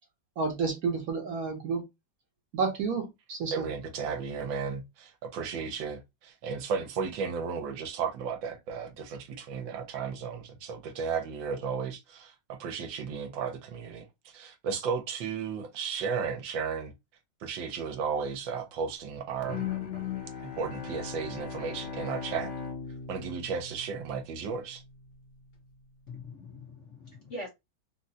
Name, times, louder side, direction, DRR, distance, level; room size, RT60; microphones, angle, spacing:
voice 1, 0.4-1.8 2.5-3.6, right 4 dB, 60° right, 1.0 m, -30 dB
voice 2, 3.5-16.9 17.4-19.7 20.4-22.5 23.1-24.8, right 6 dB, 75° right, 1.4 m, -34 dB
Bowed string instrument, 19.4-24.5, left 7 dB, 70° left, 1.8 m, -38 dB
voice 3, 26.1-27.5, left 2 dB, 50° left, 0.9 m, -42 dB
3.8 x 2.2 x 2.6 m
omnidirectional pair, 2.1 m